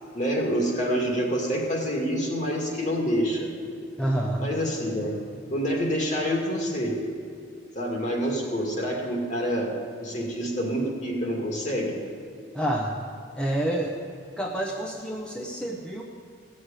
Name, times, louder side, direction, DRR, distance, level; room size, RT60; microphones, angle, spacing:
voice 1, 0.1-3.5 4.4-5.1 5.5-6.9 7.8-9.7 10.0-11.9, equal, 40° left, 0 dB, 2.3 m, -27 dB
voice 2, 4.0-4.5 12.5-13.0 13.4-14.0 14.4-16.0, right 1 dB, 5° left, -1 dB, 0.8 m, -28 dB
15.5 x 6.4 x 9.0 m, 2.5 s
head